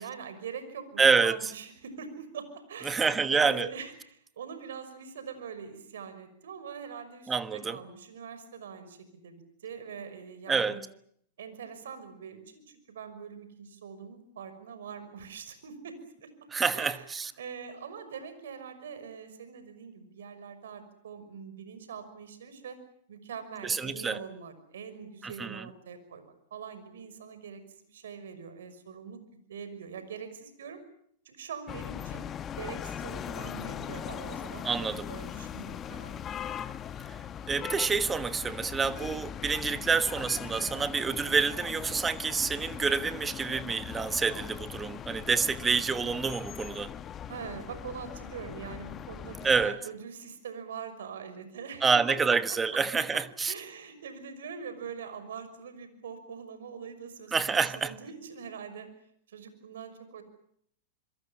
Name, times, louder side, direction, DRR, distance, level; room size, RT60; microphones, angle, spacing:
voice 1, 0.0-10.8 11.4-16.3 16.7-22.8 23.1-29.2 29.5-30.8 31.2-32.2 32.6-36.4 38.8-39.0 47.3-52.6 52.9-53.0 53.5-58.9 59.3-60.2, right 6 dB, 80° right, 5.9 m, -43 dB
voice 2, 1.0-1.4 2.8-3.7 7.3-7.8 10.5-10.8 16.5-17.3 23.6-24.2 25.2-25.6 34.6-35.1 37.1-37.2 37.5-46.9 49.4-49.8 51.8-53.5 57.3-57.9, right 5 dB, 15° right, 1.3 m, -27 dB
sound 1, 31.7-49.7, left 9 dB, 30° left, 1.2 m, -40 dB
26.5 x 22.5 x 7.2 m
hypercardioid pair, 115°, 0 cm